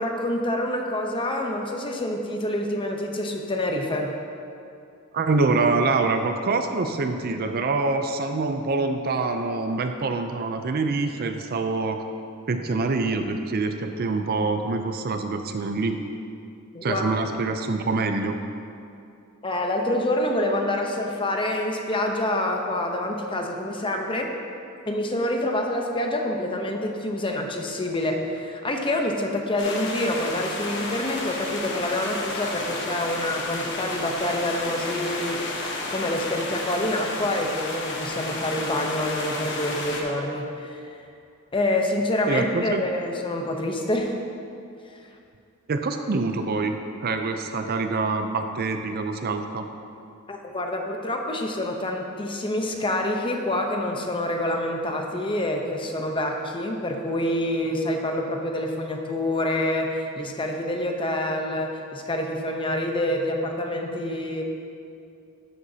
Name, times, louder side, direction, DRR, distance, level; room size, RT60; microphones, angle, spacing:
voice 1, 0.0-4.1 16.7-17.0 19.4-24.3 24.9-41.0 41.5-44.2 50.3-64.4, left 1 dB, 25° left, 2 dB, 0.8 m, -27 dB
voice 2, 5.1-12.0 12.5-16.0 16.8-18.4 42.3-42.8 45.7-49.7, right 3 dB, 45° right, 6 dB, 0.5 m, -25 dB
sound 1, 29.6-40.0, left 2 dB, 55° left, 1.2 m, -32 dB
12.0 x 7.8 x 2.8 m, 2.5 s
head